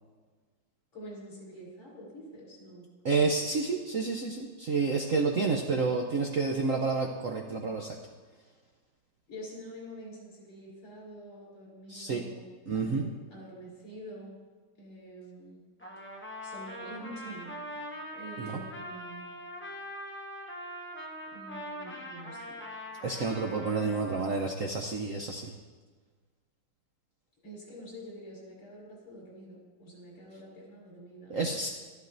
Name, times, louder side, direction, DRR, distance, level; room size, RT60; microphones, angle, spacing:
voice 1, 0.9-2.9 9.3-14.4 14.8-15.6 16.4-19.2 21.3-22.6 23.8-24.0 27.4-31.3, equal, 60° left, -5 dB, 4.7 m, -47 dB
voice 2, 3.0-7.9 11.9-12.2 12.7-13.1 18.4-18.6 23.0-25.5 31.3-31.7, right 4 dB, 70° right, 1 dB, 0.7 m, -29 dB
Trumpet, 15.8-24.2, equal, 15° left, 0.4 m, -42 dB
13.0 x 11.5 x 2.6 m, 1.5 s
omnidirectional pair, 2.3 m